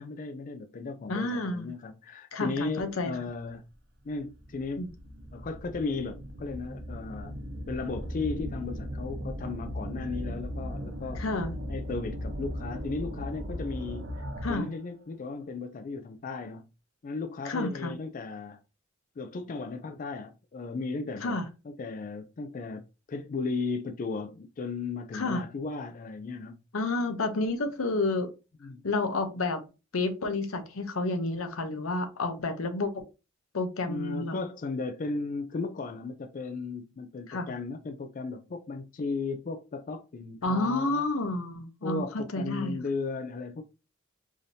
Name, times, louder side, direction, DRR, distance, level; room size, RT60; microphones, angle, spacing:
voice 1, 0.0-3.6 4.0-4.9 5.3-7.4 7.7-11.2 11.7-16.7 17.0-18.6 19.2-21.4 21.6-22.8 23.1-26.6 28.6-28.8 33.9-41.0 41.8-43.6, left 4 dB, 40° left, 0.4 m, -35 dB
voice 2, 1.1-1.7 2.3-3.1 4.8-4.9 11.2-11.5 14.4-14.7 17.4-17.9 21.2-21.5 25.1-25.4 26.7-28.3 28.8-29.6 29.9-33.0 33.5-34.3 37.3-37.5 40.4-42.8, left 2 dB, 85° left, 0.8 m, -30 dB
sound 1, 4.2-14.8, equal, 55° right, 0.8 m, -38 dB
4.9 x 2.7 x 2.7 m
head